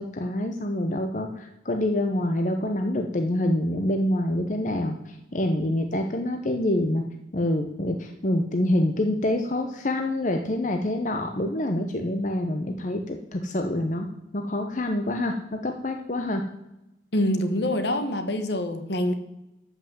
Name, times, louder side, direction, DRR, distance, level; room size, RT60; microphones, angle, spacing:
voice 1, 0.0-7.0 7.3-14.1 14.3-16.4, left 1 dB, 40° left, 5 dB, 0.8 m, -26 dB
voice 2, 17.1-19.1, left 1 dB, 60° left, 9 dB, 1.3 m, -25 dB
13.0 x 5.7 x 7.7 m, 0.91 s
head